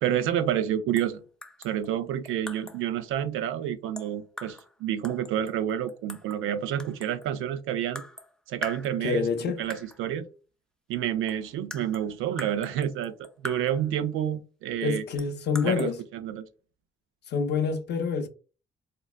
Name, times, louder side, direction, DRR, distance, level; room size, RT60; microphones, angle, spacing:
voice 1, 0.0-1.2 1.6-8.0 8.5-9.3 9.6-10.3 10.9-15.0 15.6-16.4, right 10 dB, 85° right, 0.4 m, -29 dB
sound 1, 1.0-1.1 1.4-2.9 4.0-4.7 5.0-6.4 6.8-7.3 7.9-8.3 8.6-9.3 9.7-10.0 10.9-11.0 11.3-13.9 15.2-15.9, left 1 dB, 5° left, 0.3 m, -42 dB
voice 2, 9.0-9.6 14.8-16.0 17.3-18.3, left 6 dB, 60° left, 0.5 m, -27 dB
3.7 x 2.1 x 2.3 m
cardioid pair, 90°, 20 cm